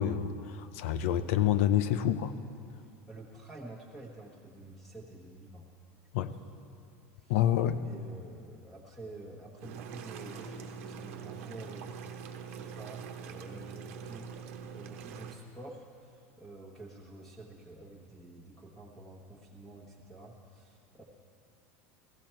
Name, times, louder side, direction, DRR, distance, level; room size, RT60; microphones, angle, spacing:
voice 1, 0.0-2.4 6.1-6.3 7.3-7.8, left 11 dB, 75° left, 12 dB, 0.7 m, -28 dB
voice 2, 2.8-5.7 6.2-6.3 7.2-7.3 7.7-11.9 12.4-21.0, right 2 dB, 5° left, -4 dB, 1.4 m, -49 dB
sound 1, 9.6-15.3, right 6 dB, 80° right, 1.1 m, -44 dB
15.5 x 15.0 x 4.5 m, 2.5 s
supercardioid pair, 140°, 7 cm